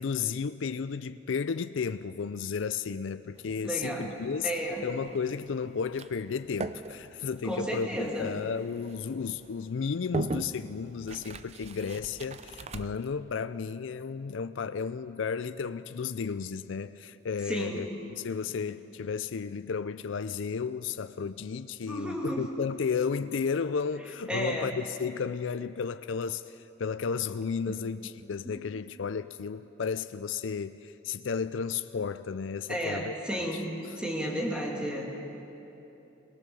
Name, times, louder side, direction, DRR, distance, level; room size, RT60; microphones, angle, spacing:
voice 1, 0.0-4.5 4.8-17.9 18.2-33.2, left 6 dB, 80° left, 0.4 m, -33 dB
sound 1, 3.3-13.1, right 2 dB, 35° right, 0.5 m, -41 dB
voice 2, 3.6-4.9 7.4-8.3 17.5-17.9 21.9-22.5 24.3-24.7 27.7-27.8 28.4-28.6 32.7-33.7 34.0-35.2, equal, 5° right, 2.3 m, -33 dB
21.5 x 18.5 x 7.0 m
head